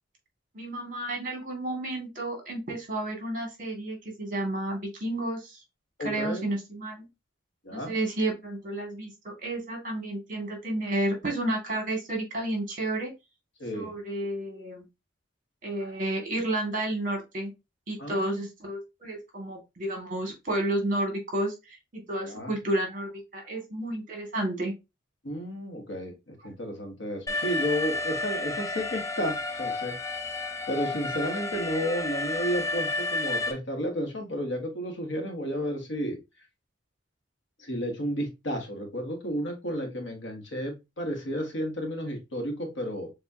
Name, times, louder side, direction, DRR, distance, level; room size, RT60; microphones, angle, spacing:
voice 1, 0.5-5.6 6.0-7.1 7.7-13.1 13.7-14.9 15.6-17.5 17.9-24.7, right 1 dB, 45° right, 1 dB, 1.8 m, -31 dB
voice 2, 6.0-6.5 7.6-7.9 13.6-13.9 18.0-18.4 22.2-22.5 25.2-30.0 30.7-36.2 37.6-43.1, equal, 75° left, 3 dB, 1.2 m, -32 dB
Alarm, 27.3-33.5, left 2 dB, 15° left, 0.4 m, -31 dB
6.7 x 2.4 x 2.7 m, 0.24 s
head